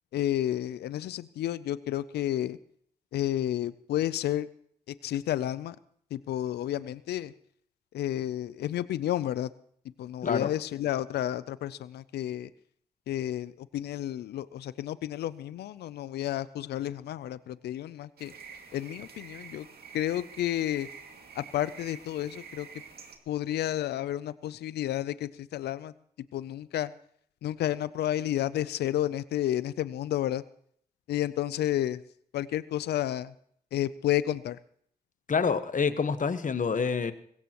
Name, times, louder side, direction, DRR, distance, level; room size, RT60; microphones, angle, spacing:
voice 1, 0.1-2.6 3.1-4.5 4.9-5.8 6.1-7.3 7.9-9.5 10.0-12.5 13.1-18.3 18.7-19.7 19.9-20.9 21.4-22.7 23.3-25.9 26.3-26.9 27.4-30.4 31.1-32.0 32.3-33.3 33.7-34.6, left 12 dB, 90° left, 17 dB, 0.5 m, -31 dB
sound 1, 18.2-23.2, right 6 dB, 70° right, 2.2 m, -48 dB
voice 2, 35.3-37.1, left 5 dB, 50° left, 11 dB, 1.3 m, -27 dB
21.0 x 16.5 x 3.0 m, 0.64 s
supercardioid pair, 50°, 17 cm